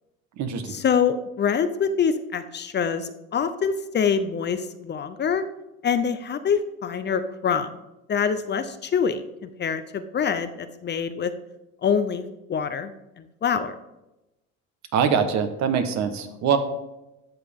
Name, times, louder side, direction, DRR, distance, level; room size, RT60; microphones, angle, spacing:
voice 1, 0.7-5.4 5.8-7.7 8.1-11.3 11.8-12.9 13.2-13.7, left 6 dB, 30° left, 11 dB, 0.6 m, -25 dB
voice 2, 14.9-16.6, right 7 dB, 55° right, 8 dB, 1.3 m, -23 dB
12.0 x 6.9 x 3.6 m, 0.95 s
supercardioid pair, 110°, 33 cm